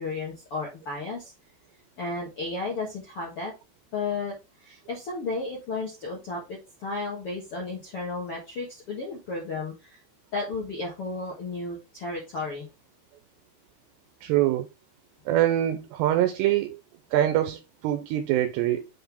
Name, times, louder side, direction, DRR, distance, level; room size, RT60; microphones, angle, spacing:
voice 1, 0.0-1.3 2.0-3.5 3.9-4.3 4.6-10.0 10.3-12.7, left 3 dB, 70° left, 1.3 m, -33 dB
voice 2, 14.2-14.7 15.3-16.8 17.1-18.9, right 12 dB, 80° right, 2.6 m, -24 dB
7.8 x 3.8 x 3.4 m
omnidirectional pair, 5.0 m